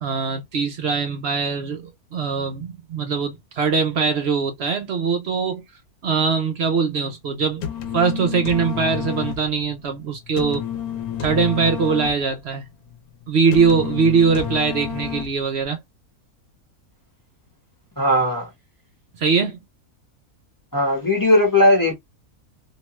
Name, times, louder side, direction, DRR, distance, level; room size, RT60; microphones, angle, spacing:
voice 1, 0.0-5.6 6.0-7.6 7.9-10.6 11.2-12.6 13.3-15.8 19.2-19.6, right 5 dB, 60° right, 0.7 m, -21 dB
sound 1, 7.4-15.6, left 8 dB, 80° left, 1.1 m, -30 dB
voice 2, 18.0-18.5 20.7-21.9, left 1 dB, 15° left, 0.9 m, -17 dB
2.8 x 2.2 x 3.0 m
omnidirectional pair, 1.6 m